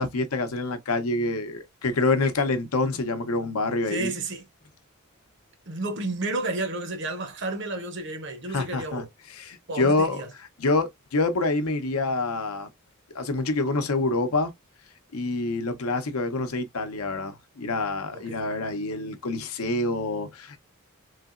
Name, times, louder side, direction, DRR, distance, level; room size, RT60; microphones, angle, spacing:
voice 1, 0.0-4.1 8.5-9.0 9.3-10.2 10.6-12.7 13.1-14.5 15.1-20.6, left 3 dB, 80° left, 0.7 m, -26 dB
voice 2, 3.9-4.4 5.7-9.1 9.7-10.3 18.1-18.4, right 2 dB, 50° right, 0.7 m, -31 dB
3.2 x 2.8 x 2.4 m
head